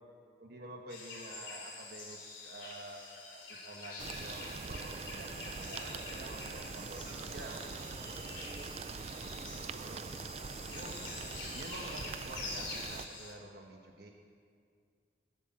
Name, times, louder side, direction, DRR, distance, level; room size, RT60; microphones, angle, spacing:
voice 1, 0.4-7.1 7.3-7.6 9.6-10.1 10.7-11.1 11.5-14.1, right 2 dB, 55° right, 1 dB, 1.3 m, -49 dB
sound 1, 0.9-13.3, left 3 dB, 80° left, 2.8 m, -46 dB
sound 2, 4.0-13.1, right 5 dB, 35° right, 0.4 m, -43 dB
voice 2, 5.9-9.0 9.3-10.1, right 1 dB, 15° right, -1 dB, 1.9 m, -55 dB
18.5 x 8.3 x 7.5 m, 2.2 s
head